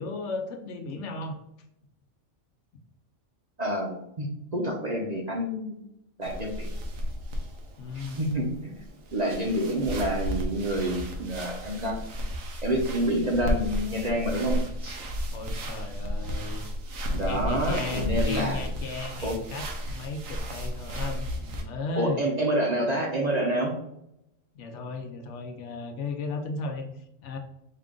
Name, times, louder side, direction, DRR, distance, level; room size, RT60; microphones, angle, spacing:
voice 1, 0.0-1.4 7.8-8.3 15.3-16.7 17.2-22.2 24.5-27.4, left 3 dB, 70° left, 5 dB, 0.9 m, -35 dB
voice 2, 3.6-5.8 6.2-6.7 7.9-8.8 9.1-12.0 12.6-15.0 17.1-18.6 19.2-19.4 22.0-23.7, right 1 dB, 40° right, -1 dB, 0.7 m, -28 dB
sound 1, 6.2-21.6, equal, 90° right, 1.2 m, -33 dB
5.6 x 2.5 x 3.6 m, 0.79 s
omnidirectional pair, 1.4 m